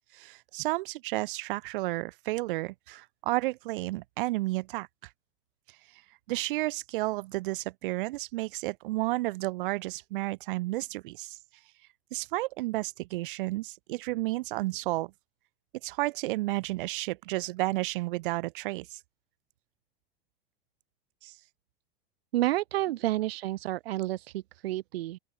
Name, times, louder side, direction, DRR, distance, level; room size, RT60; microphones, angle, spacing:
voice 1, 0.1-4.9 6.3-11.4 12.1-15.1 15.8-19.0 21.2-21.3, right 19 dB, 60° right, 0.6 m, -32 dB
voice 2, 22.3-25.2, right 15 dB, 80° right, 1.6 m, -30 dB
open air
supercardioid pair, 165°, 30 cm